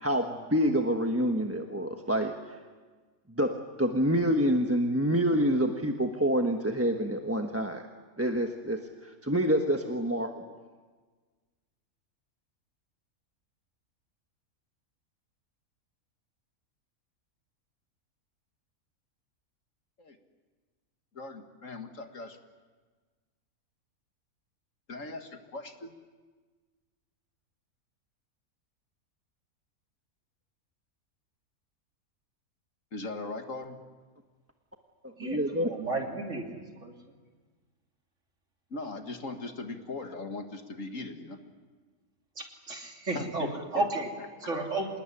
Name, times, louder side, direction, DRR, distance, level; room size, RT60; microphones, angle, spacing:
voice 1, 0.0-2.3 3.4-7.8 8.2-8.8 9.2-10.3 35.2-35.7, equal, 10° right, 4 dB, 1.2 m, -27 dB
voice 2, 21.1-22.4 24.9-25.9 32.9-33.8 38.7-41.4 43.1-44.3, left 2 dB, 60° left, 6 dB, 2.2 m, -39 dB
voice 3, 35.2-36.9 42.4-43.5 43.7-44.1 44.4-44.9, right 2 dB, 55° right, 2 dB, 3.5 m, -33 dB
26.5 x 20.0 x 10.0 m, 1.4 s
omnidirectional pair, 1.6 m